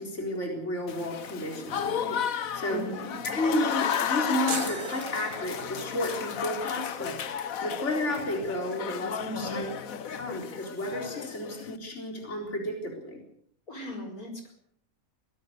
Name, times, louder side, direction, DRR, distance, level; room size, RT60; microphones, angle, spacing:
voice 1, 0.0-2.8 3.2-9.7 10.1-13.2, left 1 dB, 55° left, 2 dB, 4.5 m, -32 dB
Applause / Crowd, 0.9-11.8, left 8 dB, 70° left, 1.4 m, -33 dB
voice 2, 2.7-3.1 9.2-9.6 13.7-14.5, equal, 90° left, 4 dB, 5.3 m, -37 dB
sound 1, 4.5-6.0, right 8 dB, 80° right, 1.6 m, -38 dB
23.0 x 18.0 x 6.6 m, 0.64 s
omnidirectional pair, 1.5 m